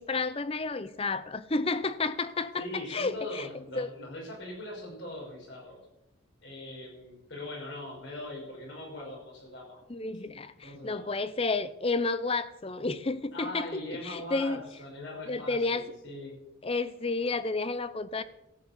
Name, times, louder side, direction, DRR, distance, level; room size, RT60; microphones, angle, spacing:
voice 1, 0.0-3.5 3.8-3.9 9.9-14.6 15.3-15.9 16.6-18.2, left 3 dB, 30° left, 14 dB, 0.6 m, -31 dB
voice 2, 2.5-5.8 6.4-9.8 10.6-11.2 13.3-16.3, left 1 dB, 60° left, -1 dB, 5.8 m, -41 dB
14.5 x 7.1 x 8.4 m, 0.92 s
head